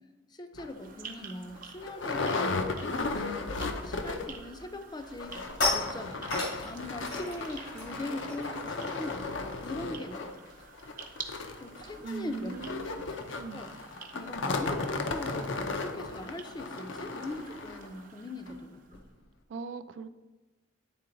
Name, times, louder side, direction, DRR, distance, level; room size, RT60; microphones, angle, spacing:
voice 1, 0.3-5.4 5.7-6.3 6.6-10.3 11.2-19.0, left 1 dB, 20° left, 7 dB, 0.5 m, -41 dB
sound 1, 0.6-0.7 1.2-1.3 1.5-4.4 4.7-4.8 5.1-17.9 18.5-18.6 18.9-19.0, left 3 dB, 70° left, 0.6 m, -35 dB
sound 2, 0.6-19.1, right 6 dB, 45° right, 0.7 m, -50 dB
sound 3, 4.8-10.8 11.0-11.3 11.6-16.6, left 2 dB, 90° left, 2.1 m, -38 dB
voice 2, 12.0-13.6 19.5-20.1, right 4 dB, 70° right, 12 dB, 0.3 m, -40 dB
9.4 x 3.7 x 3.9 m, 1.2 s
head